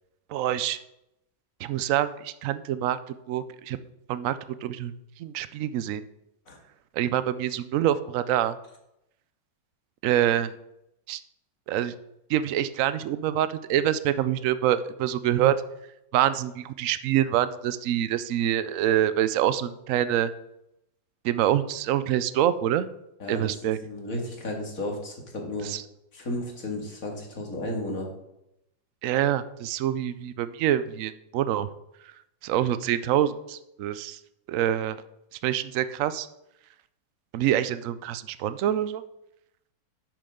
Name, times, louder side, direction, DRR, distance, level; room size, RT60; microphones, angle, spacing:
voice 1, 0.3-0.8 1.6-3.0 3.3-3.8 4.1-4.4 4.6-4.9 5.2-6.0 7.0-8.6 10.0-10.5 11.1-11.2 11.7-11.9 12.3-15.5 16.1-20.3 21.2-22.9 23.3-23.8 25.7-25.8 29.0-31.7 32.4-34.2 34.5-35.0 35.4-36.3 37.3-39.0, right 11 dB, 85° right, 13 dB, 0.7 m, -25 dB
voice 2, 23.8-25.7 26.1-28.1, left 1 dB, 50° left, 0 dB, 2.5 m, -33 dB
10.5 x 8.5 x 3.7 m, 0.84 s
omnidirectional pair, 2.0 m